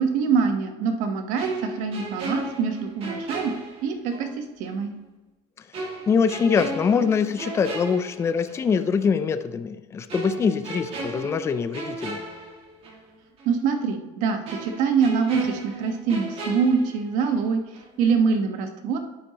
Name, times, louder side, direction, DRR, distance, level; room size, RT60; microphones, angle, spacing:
voice 1, 0.0-3.5 3.8-4.9 13.4-17.6 18.0-19.0, right 5 dB, 60° right, 6 dB, 1.2 m, -24 dB
sound 1, 1.4-4.3 4.6-4.8 5.7-8.7 9.0-9.2 10.1-13.1 13.4-13.5 14.5-17.5 17.7-18.0, right 2 dB, 40° right, 2.0 m, -36 dB
voice 2, 6.1-12.2, left 6 dB, 20° left, 10 dB, 0.4 m, -23 dB
9.8 x 8.0 x 2.9 m, 1.1 s
cardioid pair, 145°, 15 cm